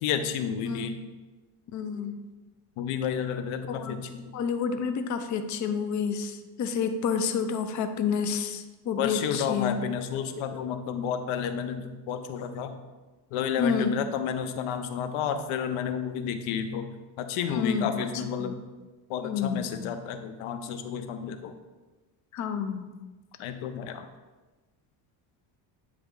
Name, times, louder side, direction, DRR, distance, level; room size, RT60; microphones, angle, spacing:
voice 1, 0.0-1.0 2.8-4.2 9.0-12.8 13.3-16.9 17.2-18.5 19.1-21.5 23.4-24.1, left 8 dB, 80° left, 9 dB, 0.7 m, -31 dB
voice 2, 0.6-1.0 1.7-2.2 3.7-4.0 4.3-9.8 13.6-14.0 17.5-18.1 18.4-18.6 19.2-19.7 22.3-22.9, left 6 dB, 40° left, 8 dB, 0.5 m, -29 dB
8.0 x 3.3 x 3.7 m, 1.2 s
cardioid pair, 100°, 49 cm